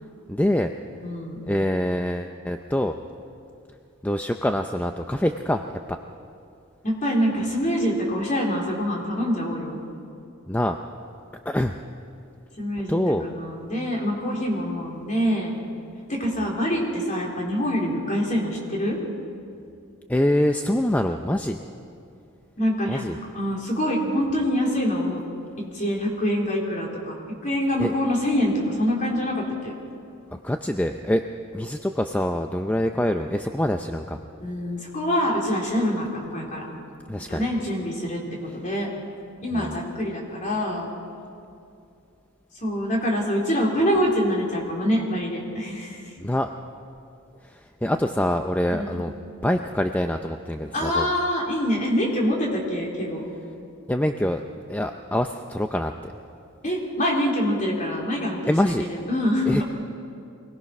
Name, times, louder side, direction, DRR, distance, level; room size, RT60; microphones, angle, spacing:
voice 1, 0.3-0.7 1.5-2.9 4.0-6.0 10.5-10.8 11.5-11.8 12.9-13.3 20.1-21.6 22.9-23.2 27.8-27.9 30.3-31.2 31.5-34.2 37.1-37.4 39.5-39.8 46.2-46.5 47.4-49.1 49.4-51.1 53.9-54.4 54.7-56.1 58.5-58.8 59.5-59.6, left 1 dB, 5° left, 5 dB, 0.5 m, -25 dB
voice 2, 1.0-1.4 6.8-9.8 12.6-15.6 16.1-19.0 22.6-23.0 23.3-25.2 25.7-27.1 27.4-29.7 34.4-36.6 37.3-38.9 39.4-40.9 42.6-46.1 48.7-49.0 50.7-53.2 56.6-59.6, equal, 35° left, -2 dB, 3.8 m, -25 dB
24.5 x 19.0 x 6.0 m, 2.5 s
head